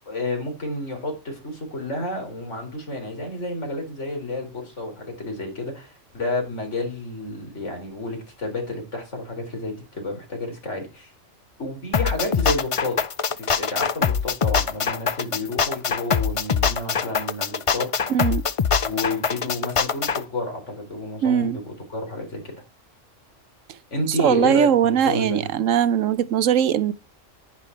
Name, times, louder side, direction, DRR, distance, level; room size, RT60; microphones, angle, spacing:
voice 1, 0.1-11.1 11.6-13.0 13.4-17.9 18.8-22.6 23.9-25.5, left 2 dB, 65° left, 4.3 m, -30 dB
sound 1, 11.9-20.2, left 6 dB, 50° left, 0.4 m, -23 dB
voice 2, 18.1-18.5 21.2-21.6 24.2-26.9, right 9 dB, 80° right, 1.1 m, -20 dB
10.0 x 9.9 x 4.5 m
omnidirectional pair, 1.3 m